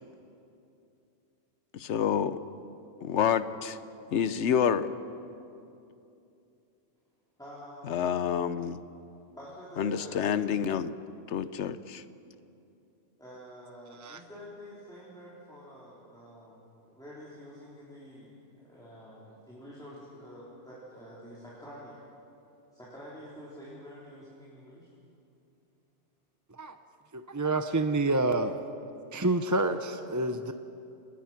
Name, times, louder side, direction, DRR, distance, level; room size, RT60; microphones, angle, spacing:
voice 1, 1.7-2.4 3.0-3.8 4.1-4.9 7.9-8.8 9.8-10.9 11.3-12.0, left 8 dB, 70° left, 13 dB, 1.1 m, -28 dB
voice 2, 7.4-7.9 9.3-10.3 13.2-22.0 22.7-24.9, equal, 5° left, -7 dB, 4.1 m, -48 dB
voice 3, 27.1-28.5 29.1-30.5, right 2 dB, 20° right, 8 dB, 0.6 m, -28 dB
28.5 x 20.5 x 6.0 m, 2.7 s
omnidirectional pair, 1.2 m